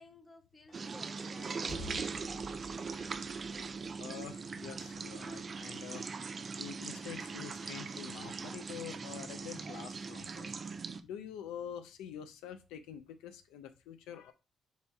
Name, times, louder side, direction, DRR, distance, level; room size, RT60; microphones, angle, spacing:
voice 1, 0.0-2.4, left 2 dB, 25° left, 0.8 m, -57 dB
sound 1, 0.7-4.6, left 1 dB, 60° left, 1.6 m, -50 dB
sound 2, 0.7-11.0, right 4 dB, 45° right, 0.4 m, -41 dB
voice 2, 4.0-6.1 6.6-10.5 11.0-14.3, left 9 dB, 90° left, 0.4 m, -46 dB
Bowed string instrument, 7.0-10.7, right 2 dB, 25° right, 1.0 m, -60 dB
4.1 x 2.7 x 3.5 m
supercardioid pair, 60°, 0 cm